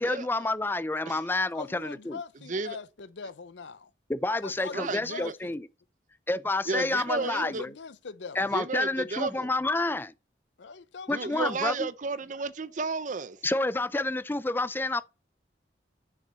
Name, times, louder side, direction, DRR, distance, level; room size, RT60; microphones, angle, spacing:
voice 1, 0.0-2.2 4.1-5.6 6.3-7.7 8.4-10.1 11.1-11.7 13.4-15.0, left 2 dB, 10° left, 0.4 m, -29 dB
voice 2, 1.5-3.9 4.4-5.6 6.7-8.5 10.6-11.7, left 5 dB, 75° left, 0.7 m, -42 dB
voice 3, 4.7-5.3 6.6-7.6 8.5-9.5 11.1-13.4, right 4 dB, 45° right, 0.6 m, -33 dB
6.6 x 5.9 x 5.5 m
head